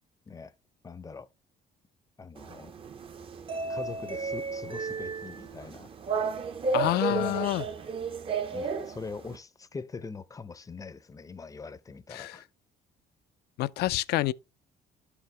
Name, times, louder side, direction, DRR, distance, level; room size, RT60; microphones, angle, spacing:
voice 1, 0.8-1.3 2.2-2.7 3.7-5.9 6.8-7.5 8.5-12.5, left 4 dB, 20° left, 0.5 m, -42 dB
sound 1, 2.4-9.4, right 4 dB, 30° right, 0.6 m, -33 dB
voice 2, 6.7-7.7 12.1-12.4 13.6-14.3, left 16 dB, 75° left, 0.4 m, -28 dB
11.5 x 4.9 x 3.2 m
cardioid pair, 110°, 17 cm